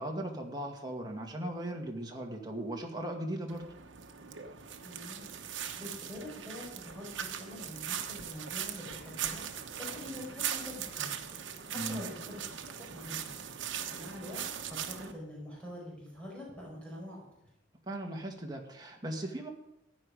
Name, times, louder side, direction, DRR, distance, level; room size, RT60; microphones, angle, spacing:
voice 1, 0.0-3.6 11.7-12.0 17.9-19.5, right 1 dB, 20° right, 1 dB, 2.0 m, -38 dB
sound 1, 3.5-15.1, right 8 dB, 75° right, 1.1 m, -40 dB
voice 2, 4.8-5.2 5.8-9.4 9.8-11.2 11.7-13.3 13.9-14.4 14.8-17.5, left 1 dB, 5° left, -4 dB, 5.0 m, -45 dB
15.0 x 10.0 x 5.1 m, 0.85 s
head